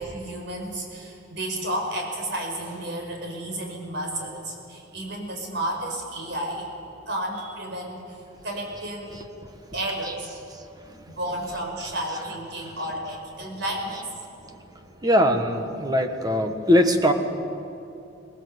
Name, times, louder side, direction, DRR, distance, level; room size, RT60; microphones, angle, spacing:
voice 1, 0.0-6.7 7.1-9.2 9.7-10.4 11.1-14.1, right 1 dB, 60° right, 1 dB, 5.3 m, -32 dB
voice 2, 9.1-10.2 10.5-11.5 12.1-12.2 12.6-13.0 14.5-14.6 15.0-17.1, equal, 20° right, 6 dB, 1.5 m, -24 dB
24.5 x 19.5 x 8.0 m, 2.7 s
head